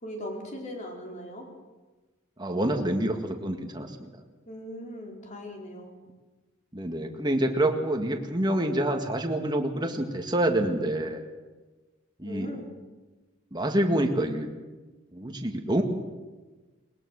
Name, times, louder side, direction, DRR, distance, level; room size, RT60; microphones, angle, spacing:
voice 1, 0.0-1.5 4.5-5.9 12.2-12.7, equal, 35° left, 0 dB, 4.3 m, -39 dB
voice 2, 2.4-4.1 6.7-11.2 12.2-12.5 13.5-14.5 15.1-15.8, right 1 dB, 20° right, 3 dB, 1.9 m, -27 dB
20.5 x 20.5 x 6.5 m, 1.2 s
head